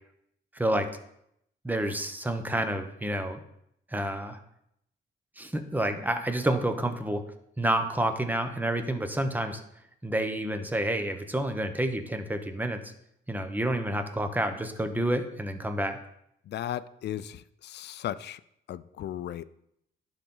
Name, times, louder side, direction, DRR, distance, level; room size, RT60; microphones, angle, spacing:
voice 1, 0.5-0.9 1.6-3.4 3.9-4.4 5.4-7.2 7.6-9.6 10.0-12.9 13.3-16.0, right 1 dB, 10° right, 0.9 m, -29 dB
voice 2, 16.5-18.4 18.7-19.4, left 11 dB, 60° left, 0.4 m, -36 dB
11.0 x 4.0 x 3.8 m
cardioid pair, 90°, 20 cm